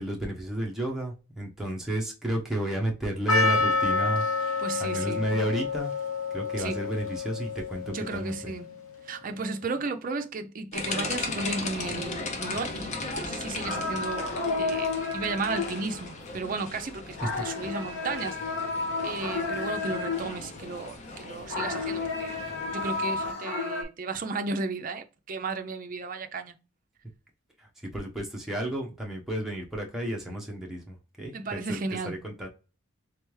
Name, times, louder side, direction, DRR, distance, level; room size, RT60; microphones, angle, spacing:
voice 1, 0.0-4.2 4.5-5.9 6.3-8.5 17.2-17.4 27.6-31.8 32.0-32.5, right 1 dB, ahead, 0.8 m, -32 dB
Percussion, 3.3-8.2, left 4 dB, 90° left, 1.0 m, -28 dB
voice 2, 4.6-5.3 6.6-6.8 7.9-8.8 9.0-18.6 19.0-22.3 22.7-26.6 31.3-32.2, right 3 dB, 40° right, 0.5 m, -34 dB
sound 1, 10.7-23.3, left 3 dB, 35° left, 0.6 m, -37 dB
sound 2, 13.6-20.7 21.1-23.8, left 3 dB, 55° left, 1.0 m, -32 dB
3.5 x 3.3 x 3.1 m
head